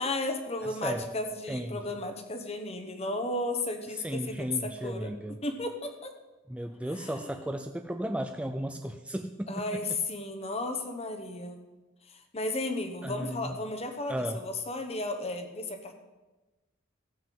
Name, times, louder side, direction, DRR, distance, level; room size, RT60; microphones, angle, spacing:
voice 1, 0.0-5.1 5.4-6.1 7.0-7.3 9.5-11.7 12.1-15.9, left 2 dB, 30° left, 6 dB, 1.0 m, -34 dB
voice 2, 0.6-1.2 1.5-1.8 3.9-5.4 6.5-9.5 13.0-13.6 14.1-14.4, right 1 dB, 5° right, 6 dB, 0.4 m, -35 dB
14.5 x 5.8 x 7.5 m, 1.1 s
head